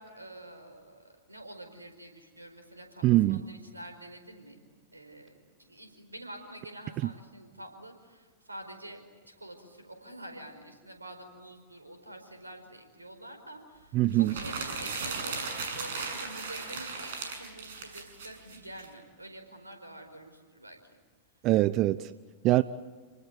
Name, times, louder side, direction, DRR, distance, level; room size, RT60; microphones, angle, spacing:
voice 1, 0.0-4.7 4.9-15.5 15.8-21.0, right 1 dB, 90° right, 6 dB, 4.9 m, -47 dB
voice 2, 3.0-3.4 13.9-14.3 21.4-22.1 22.4-22.6, right 16 dB, 40° right, 16 dB, 0.7 m, -23 dB
sound 1, 14.2-18.9, right 4 dB, 60° right, 7.0 m, -37 dB
29.0 x 19.5 x 9.4 m, 1.5 s
figure-of-eight pair, 95°, 0 cm